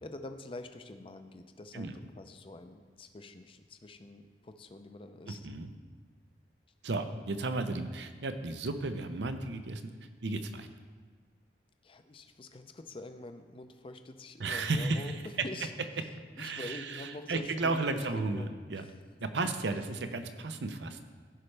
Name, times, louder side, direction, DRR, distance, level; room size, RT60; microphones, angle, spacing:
voice 1, 0.0-5.5 11.8-15.7 16.0-18.9, left 2 dB, 30° left, 8 dB, 0.5 m, -46 dB
voice 2, 5.3-5.7 6.8-9.8 10.2-10.7 14.4-15.1 16.4-18.8 19.2-21.0, right 3 dB, 80° right, 8 dB, 0.7 m, -34 dB
15.5 x 5.5 x 3.3 m, 1.5 s
head